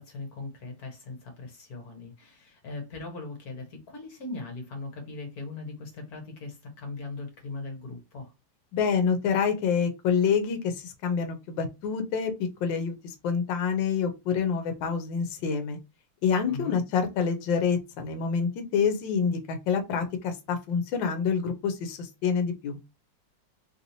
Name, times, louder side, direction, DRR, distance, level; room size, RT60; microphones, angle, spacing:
voice 1, 0.0-8.3 16.4-16.8, left 3 dB, 60° left, 1.5 m, -39 dB
voice 2, 8.7-12.3 12.6-15.8 16.2-22.8, left 6 dB, 85° left, 1.4 m, -27 dB
3.3 x 2.6 x 2.8 m
omnidirectional pair, 2.0 m